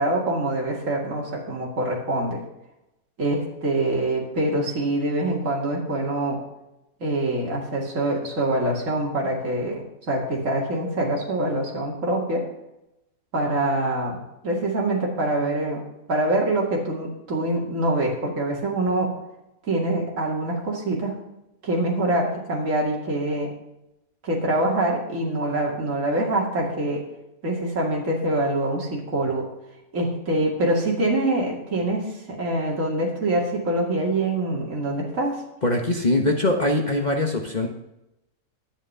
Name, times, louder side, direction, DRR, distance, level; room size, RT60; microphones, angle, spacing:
voice 1, 0.0-2.4 3.2-6.4 7.0-12.5 13.3-14.2 14.4-15.8 16.1-19.1 19.6-21.2 21.6-23.5 24.2-27.0 27.4-29.5 29.9-35.4, right 1 dB, 50° right, -2 dB, 2.7 m, -25 dB
voice 2, 35.6-37.7, left 2 dB, 30° left, 2 dB, 1.1 m, -22 dB
11.5 x 9.1 x 5.6 m, 0.90 s
omnidirectional pair, 1.7 m